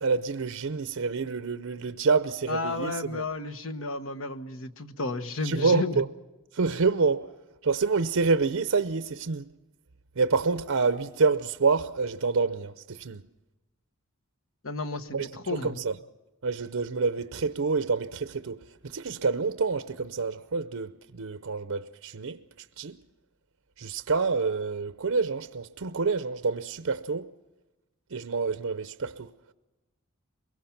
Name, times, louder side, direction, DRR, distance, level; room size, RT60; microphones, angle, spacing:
voice 1, 0.0-3.3 5.4-6.1 6.5-7.3 7.6-9.5 10.2-13.2 15.1-16.0 16.4-22.4 22.8-23.0 23.8-27.3 28.1-29.3, right 4 dB, 85° right, 0.7 m, -27 dB
voice 2, 2.5-6.0 14.6-15.8, left 3 dB, 70° left, 1.2 m, -32 dB
23.0 x 22.5 x 5.9 m
head